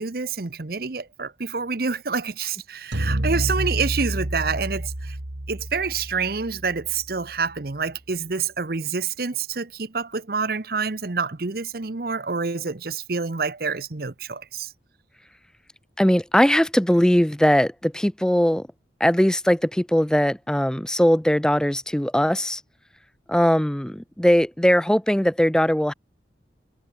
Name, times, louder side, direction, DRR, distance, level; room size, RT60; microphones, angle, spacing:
voice 1, 0.0-5.2 5.5-14.7, right 5 dB, 55° right, 0.9 m, -27 dB
sound 1, 2.9-7.3, right 1 dB, 75° right, 2.1 m, -29 dB
voice 2, 16.0-18.7 19.0-22.6 23.3-25.9, equal, 5° left, 0.4 m, -20 dB
head